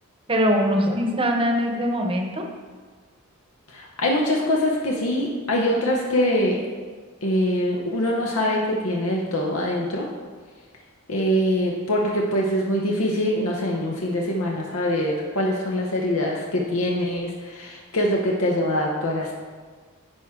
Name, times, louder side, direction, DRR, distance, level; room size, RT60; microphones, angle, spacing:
voice 1, 0.3-2.4, equal, 25° right, 2 dB, 0.9 m, -22 dB
voice 2, 3.7-6.6 7.2-10.1 11.1-19.3, left 1 dB, 80° left, -1 dB, 0.9 m, -23 dB
10.5 x 4.5 x 3.6 m, 1.5 s
head